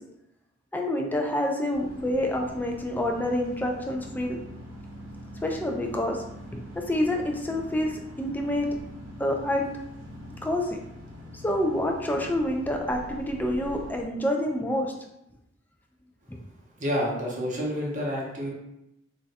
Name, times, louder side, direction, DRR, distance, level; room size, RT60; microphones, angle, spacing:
voice 1, 0.7-4.4 5.4-6.2 6.5-8.7 9.2-9.7 10.4-10.8 11.4-14.9 16.3-16.4, left 1 dB, 10° left, 2 dB, 0.3 m, -27 dB
sound 1, 1.7-14.0, equal, 90° right, 0.7 m, -43 dB
voice 2, 16.8-18.5, equal, 40° right, -3 dB, 0.7 m, -29 dB
2.4 x 2.2 x 4.0 m, 0.85 s
head